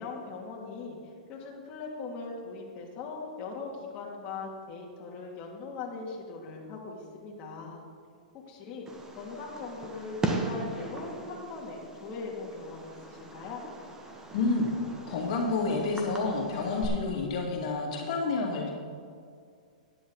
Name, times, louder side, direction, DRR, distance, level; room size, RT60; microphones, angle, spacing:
voice 1, 0.0-7.8 8.5-8.9 9.1-13.6, left 4 dB, 30° left, -3 dB, 2.4 m, -40 dB
Fireworks, 8.9-16.9, right 2 dB, 15° right, 1.5 m, -39 dB
voice 2, 14.3-14.7 15.1-18.7, left 3 dB, 60° left, -1 dB, 2.1 m, -29 dB
14.5 x 10.5 x 3.9 m, 2.2 s
hypercardioid pair, 135°, 4 cm